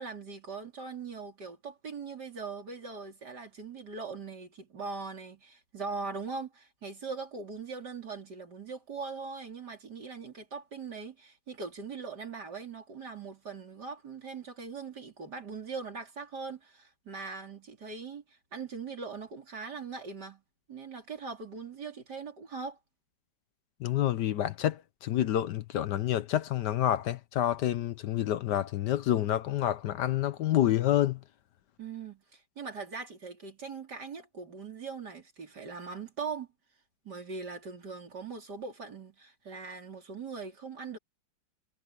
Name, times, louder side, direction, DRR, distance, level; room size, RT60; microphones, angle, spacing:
voice 1, 0.0-20.4 20.7-22.8 31.8-36.5 37.0-41.0, right 5 dB, 60° right, 4.1 m, -41 dB
voice 2, 23.8-31.2, left 12 dB, 70° left, 1.3 m, -28 dB
omnidirectional pair, 2.0 m